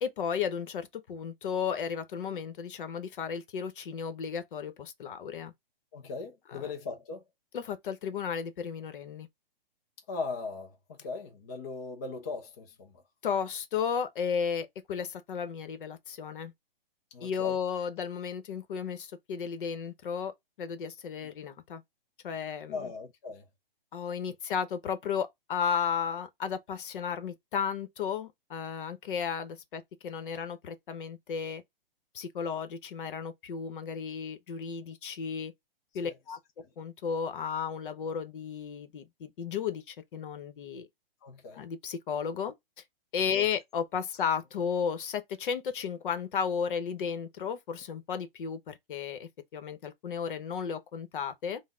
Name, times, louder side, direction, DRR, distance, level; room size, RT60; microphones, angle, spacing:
voice 1, 0.0-5.5 6.5-6.7 7.5-9.3 13.2-16.5 17.2-21.8 22.2-22.9 23.9-31.6 32.1-35.5 35.9-36.4 36.8-40.9 41.5-42.5 43.1-51.6, left 7 dB, 60° left, 0.8 m, -34 dB
voice 2, 5.9-7.2 10.1-13.0 17.1-17.6 21.2-21.3 22.7-23.5 36.0-36.2 41.2-41.6 43.3-43.5, left 4 dB, 20° left, 0.3 m, -39 dB
5.5 x 2.1 x 3.6 m
hypercardioid pair, 150°, 29 cm